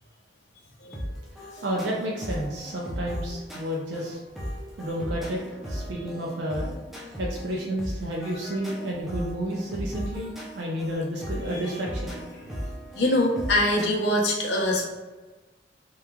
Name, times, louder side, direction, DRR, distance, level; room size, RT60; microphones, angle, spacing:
sound 1, 0.9-13.9, equal, ahead, 0.4 m, -37 dB
voice 1, 1.4-4.2 4.8-6.8 7.2-12.2, equal, 75° right, -2 dB, 0.4 m, -31 dB
voice 2, 12.9-14.9, left 1 dB, 80° left, -1 dB, 0.6 m, -24 dB
2.9 x 2.3 x 2.2 m, 1.2 s
head